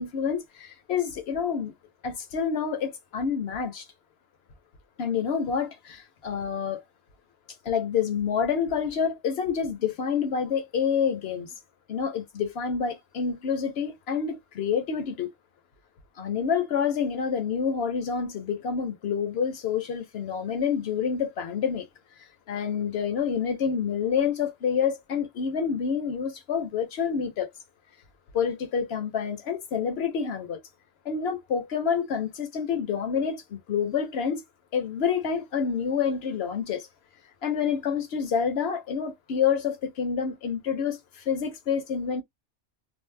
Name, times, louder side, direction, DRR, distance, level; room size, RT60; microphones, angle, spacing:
voice 1, 0.0-1.7 2.0-3.9 5.0-6.8 7.6-11.6 11.9-15.3 16.2-21.9 22.5-27.5 28.3-30.6 31.0-34.4 34.7-36.9 37.4-42.2, left 7 dB, 60° left, 0.9 m, -28 dB
2.6 x 2.0 x 3.2 m
omnidirectional pair, 1.2 m